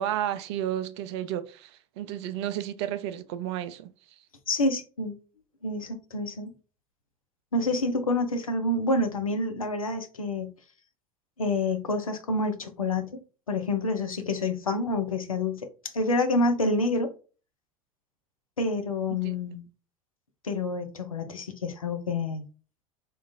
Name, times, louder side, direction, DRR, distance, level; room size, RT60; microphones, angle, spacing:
voice 1, 0.0-3.9 19.2-19.5, right 11 dB, 55° right, 0.4 m, -32 dB
voice 2, 4.5-5.2 5.6-6.5 7.5-10.5 11.4-13.2 13.5-15.7 15.9-17.1 18.6-19.6 20.4-22.4, left 2 dB, 80° left, 0.5 m, -28 dB
3.6 x 2.4 x 2.6 m
figure-of-eight pair, 70°, 18 cm